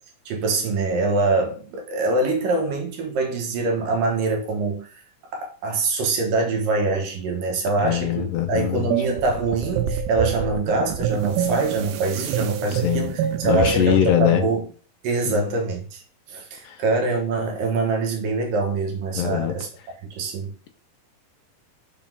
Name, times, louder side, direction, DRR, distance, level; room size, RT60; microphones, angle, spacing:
voice 1, 0.3-5.0 5.3-14.7 15.0-16.0 16.3-19.7 20.1-20.7, right 3 dB, 70° right, 2.9 m, -24 dB
voice 2, 7.8-8.9 12.8-13.1 13.4-14.4 15.3-15.4 16.6-16.8 19.2-19.5, left 10 dB, 75° left, 2.3 m, -22 dB
sound 1, 8.9-14.1, right 8 dB, 90° right, 2.5 m, -26 dB
6.1 x 4.2 x 5.4 m
omnidirectional pair, 4.2 m